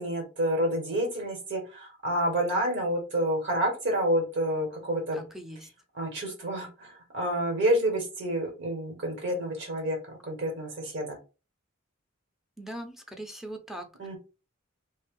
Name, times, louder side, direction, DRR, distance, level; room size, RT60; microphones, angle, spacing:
voice 1, 0.0-5.2 5.9-10.0 10.3-11.2 14.0-14.2, right 1 dB, 60° right, 1 dB, 1.6 m, -29 dB
voice 2, 5.1-5.7 12.6-13.9, right 1 dB, ahead, 4 dB, 0.6 m, -40 dB
2.9 x 2.7 x 3.8 m, 0.31 s
head